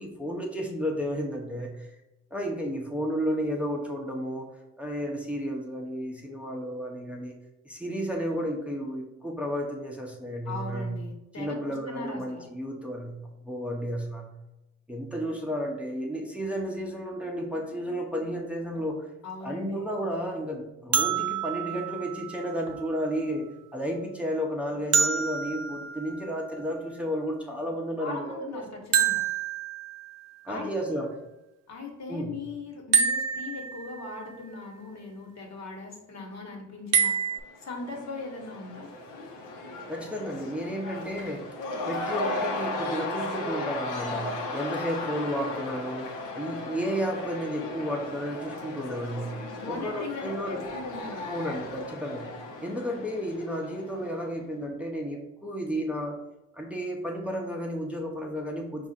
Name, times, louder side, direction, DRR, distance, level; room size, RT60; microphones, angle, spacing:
voice 1, 0.0-1.9 2.3-7.3 7.7-11.0 11.4-14.3 14.9-19.1 19.4-28.6 30.4-31.1 32.1-32.3 39.9-41.5 41.9-50.6 51.3-52.3 52.6-56.2 56.5-58.9, equal, 5° right, -1 dB, 0.7 m, -32 dB
voice 2, 10.4-12.4 19.2-19.9 28.0-29.2 30.5-31.0 31.7-37.2 37.6-38.9 49.6-51.4, left 3 dB, 60° left, 0 dB, 1.3 m, -39 dB
sound 1, 20.9-22.9 24.9-26.7 28.9-30.3 32.9-34.2 36.9-37.4, right 7 dB, 55° right, 0.6 m, -27 dB
Cheering / Crowd, 37.4-54.2, left 2 dB, 90° left, 0.9 m, -36 dB
4.8 x 2.5 x 4.0 m, 0.95 s
cardioid pair, 90°, 30 cm